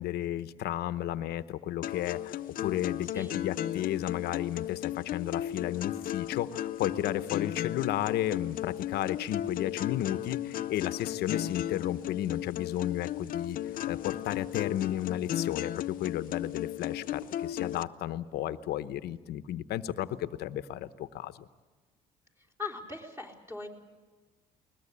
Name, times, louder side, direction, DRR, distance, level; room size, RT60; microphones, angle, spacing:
voice 1, 0.0-13.6 13.8-21.5, left 12 dB, 75° left, 13 dB, 0.9 m, -33 dB
sound 1, 1.8-17.8, left 12 dB, 55° left, 0.6 m, -35 dB
voice 2, 3.0-3.4 22.6-23.7, left 4 dB, 15° right, 1 dB, 4.0 m, -40 dB
20.5 x 20.5 x 8.6 m, 1.3 s
cardioid pair, 110°, 17 cm